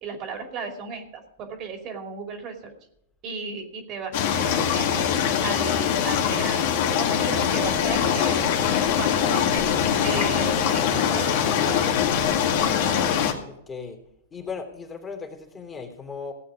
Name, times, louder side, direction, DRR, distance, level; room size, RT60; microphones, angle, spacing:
voice 1, 0.0-2.7 3.2-5.1 5.4-8.7 9.0-9.6 10.0-12.0, right 5 dB, 40° right, 4 dB, 2.7 m, -35 dB
sound 1, 4.1-13.3, left 8 dB, 55° left, 2.1 m, -23 dB
voice 2, 13.5-14.0 14.3-16.3, left 5 dB, 20° left, 2 dB, 3.0 m, -36 dB
17.0 x 8.5 x 5.0 m, 0.79 s
hypercardioid pair, 105°, 0 cm